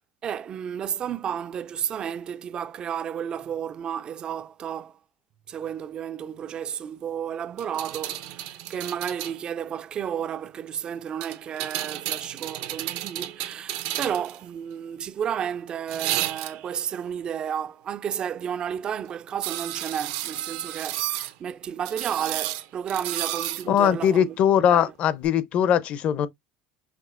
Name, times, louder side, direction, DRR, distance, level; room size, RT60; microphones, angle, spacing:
voice 1, 0.2-5.0 5.5-24.4 24.7-24.9, right 8 dB, 30° right, 0.3 m, -32 dB
sound 1, 7.6-9.4 11.2-14.4 15.9-16.8 19.4-21.3 21.8-23.7 25.2-25.3, right 14 dB, 70° right, 0.6 m, -32 dB
voice 2, 23.7-26.3, left 9 dB, 45° left, 0.6 m, -21 dB
5.8 x 2.5 x 2.4 m
supercardioid pair, 125°, 3 cm